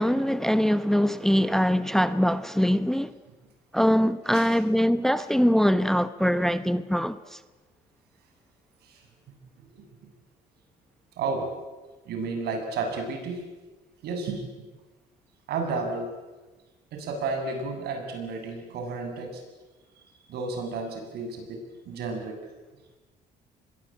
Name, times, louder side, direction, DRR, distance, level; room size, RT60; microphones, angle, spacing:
voice 1, 0.0-3.1 3.7-7.4, equal, ahead, 0.9 m, -23 dB
voice 2, 11.2-11.5 12.1-13.4 14.0-14.5 15.5-16.1 16.9-19.4 20.3-22.4, right 4 dB, 70° right, 7.6 m, -32 dB
25.5 x 21.5 x 8.8 m
cardioid pair, 110°, 17 cm